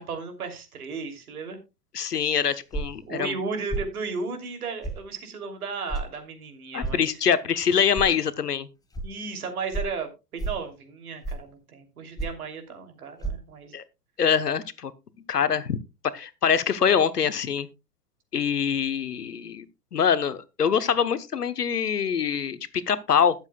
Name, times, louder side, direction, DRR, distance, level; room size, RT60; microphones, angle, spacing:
voice 1, 0.0-1.6 3.1-7.2 9.0-13.8, right 4 dB, 65° right, 3.0 m, -35 dB
voice 2, 1.9-3.3 6.7-8.7 13.7-13.8 14.2-14.9 15.3-15.8 16.1-17.7 18.3-19.6 19.9-23.3, left 7 dB, 80° left, 1.1 m, -24 dB
sound 1, 2.7-3.0 3.7-3.9 4.8-5.0 5.9-6.1 6.8-7.0 7.9-8.1 8.9-9.1 9.7-9.9 10.4-10.6 11.2-11.5 12.2-12.5 13.2-13.3, right 3 dB, 10° left, 1.1 m, -30 dB
21.0 x 7.3 x 2.3 m
figure-of-eight pair, 100°, 46 cm